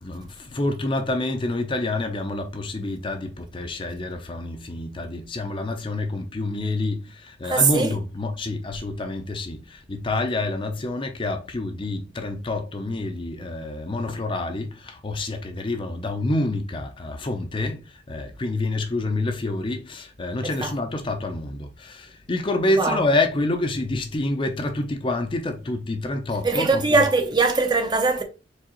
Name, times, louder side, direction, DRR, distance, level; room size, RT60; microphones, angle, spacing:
voice 1, 0.0-27.1, left 2 dB, 25° left, 0.5 m, -27 dB
voice 2, 7.4-7.9 20.4-20.7 22.8-23.0 26.4-28.2, right 3 dB, 25° right, 0.5 m, -21 dB
4.7 x 3.5 x 2.9 m
head